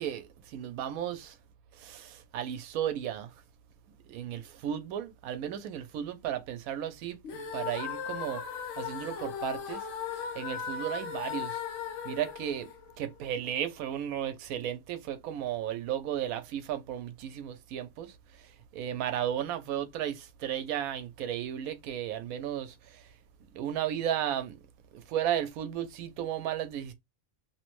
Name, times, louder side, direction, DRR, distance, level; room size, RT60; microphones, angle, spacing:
voice 1, 0.0-1.4 1.7-3.4 4.1-8.4 8.7-9.9 10.3-11.6 12.0-12.7 13.0-23.1 23.5-24.6 24.9-26.9, right 10 dB, 85° right, 1.0 m, -34 dB
sound 1, 7.2-13.4, left 7 dB, 70° left, 0.9 m, -37 dB
3.0 x 2.1 x 3.0 m
omnidirectional pair, 1.5 m